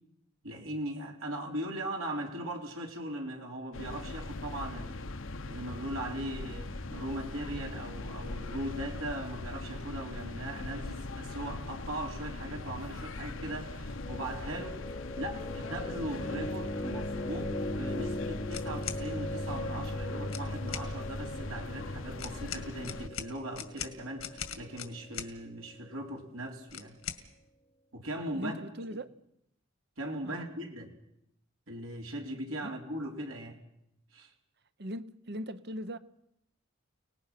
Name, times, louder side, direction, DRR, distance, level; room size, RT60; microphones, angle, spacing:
voice 1, 0.4-5.1 5.5-26.9 27.9-28.5 30.0-30.9 31.7-33.6 34.1-34.3, right 1 dB, 75° right, 3.9 m, -39 dB
sound 1, 3.7-23.1, left 2 dB, 70° left, 1.0 m, -40 dB
sound 2, 13.9-25.9, left 1 dB, 30° left, 0.9 m, -39 dB
sound 3, 18.5-19.0 20.2-20.9 22.2-25.3 26.7-27.2, left 8 dB, 85° left, 2.1 m, -40 dB
voice 2, 28.3-29.1 30.2-30.4 32.6-32.7 34.8-36.0, equal, 55° right, 1.0 m, -39 dB
30.0 x 19.5 x 5.9 m
head